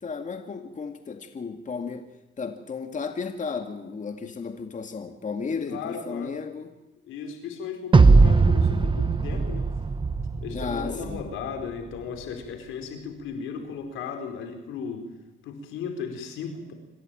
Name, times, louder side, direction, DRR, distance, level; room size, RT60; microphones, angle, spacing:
voice 1, 0.0-2.1 2.4-6.7 10.5-11.3, left 5 dB, 40° left, 6 dB, 2.2 m, -34 dB
voice 2, 5.7-6.4 7.0-9.7 10.4-15.1 15.4-16.7, left 6 dB, 90° left, 5 dB, 4.5 m, -35 dB
sound 1, 7.9-11.2, right 4 dB, 25° right, 0.9 m, -19 dB
26.0 x 15.0 x 9.2 m, 1.0 s
cardioid pair, 90°, 20 cm